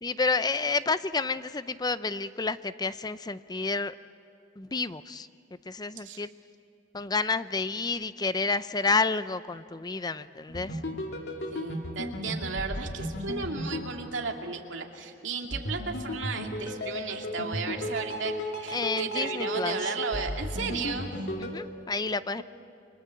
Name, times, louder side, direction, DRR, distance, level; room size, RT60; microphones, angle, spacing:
voice 1, 0.0-3.9 4.6-5.3 5.7-6.3 6.9-10.8 18.7-19.8 21.4-22.4, left 4 dB, 20° left, 14 dB, 0.6 m, -30 dB
sound 1, 10.5-14.8 15.5-21.6, equal, 65° left, 2.7 m, -35 dB
voice 2, 11.5-21.1 22.4-22.5, right 4 dB, 75° right, 2 dB, 2.5 m, -35 dB
29.5 x 24.0 x 7.7 m, 2.4 s
head